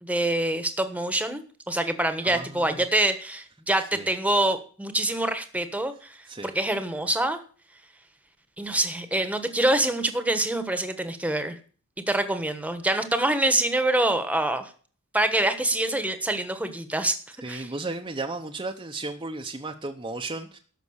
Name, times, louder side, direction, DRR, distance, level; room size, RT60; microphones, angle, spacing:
voice 1, 0.0-1.4 1.7-6.2 6.4-7.4 8.6-11.5 12.1-14.7 15.1-17.2 17.5-17.7, right 1 dB, 5° right, 9 dB, 1.3 m, -25 dB
voice 2, 2.2-2.8 3.9-4.1 6.3-6.5 17.4-20.6, right 3 dB, 20° right, 3 dB, 0.9 m, -34 dB
13.0 x 5.9 x 8.1 m, 0.41 s
head